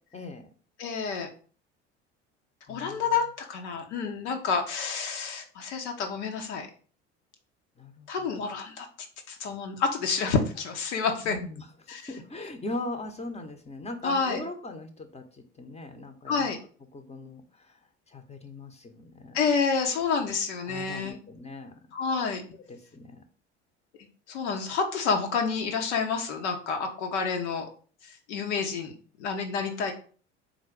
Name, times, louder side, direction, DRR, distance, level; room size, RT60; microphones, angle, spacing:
voice 1, 0.1-0.5 2.7-3.1 7.8-8.5 11.2-16.5 16.9-17.8 18.1-19.4 20.6-21.7 22.5-23.2, left 2 dB, 20° left, 6 dB, 0.8 m, -40 dB
voice 2, 0.8-1.3 2.7-6.7 8.1-8.9 9.3-11.4 11.9-12.0 14.0-14.4 16.3-16.6 19.3-21.2 21.9-22.4 24.3-27.7 28.3-28.9 29.2-29.9, left 5 dB, 75° left, 4 dB, 1.0 m, -29 dB
4.0 x 2.6 x 4.6 m, 0.42 s
hypercardioid pair, 65°, 35 cm